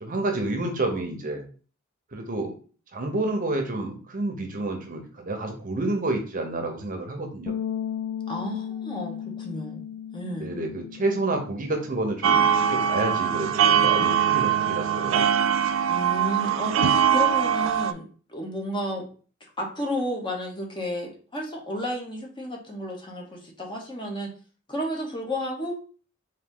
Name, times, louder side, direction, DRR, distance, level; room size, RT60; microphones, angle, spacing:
voice 1, 0.0-1.4 2.1-2.5 2.9-7.5 10.4-15.3, right 2 dB, 40° right, 4 dB, 0.8 m, -29 dB
sound 1, 7.5-13.7, left 9 dB, 85° left, 0.3 m, -36 dB
voice 2, 8.3-9.9 10.1-10.5 15.9-19.1 19.6-24.3 24.7-25.8, equal, 25° left, 0 dB, 1.0 m, -32 dB
sound 2, 12.2-17.9, right 8 dB, 65° right, 0.3 m, -22 dB
4.0 x 2.7 x 3.7 m, 0.39 s
head